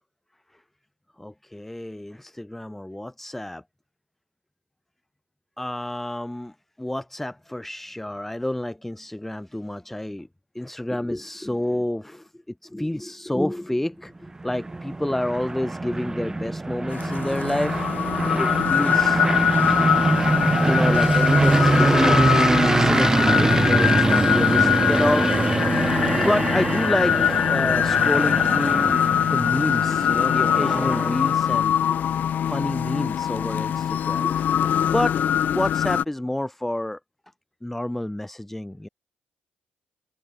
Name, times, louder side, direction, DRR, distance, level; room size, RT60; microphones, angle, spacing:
voice 1, 1.2-3.6 5.6-10.3 10.5-12.3 12.6-17.9 18.4-19.2 20.3-25.4 26.1-32.0 32.5-34.5 34.9-35.2 35.5-37.0 37.6-38.9, left 1 dB, 5° left, 2.3 m, -29 dB
sound 1, 14.3-31.5, right 2 dB, 15° right, 0.7 m, -23 dB
sound 2, 16.9-36.0, left 9 dB, 60° left, 0.8 m, -23 dB
cardioid pair, 100°, 3 cm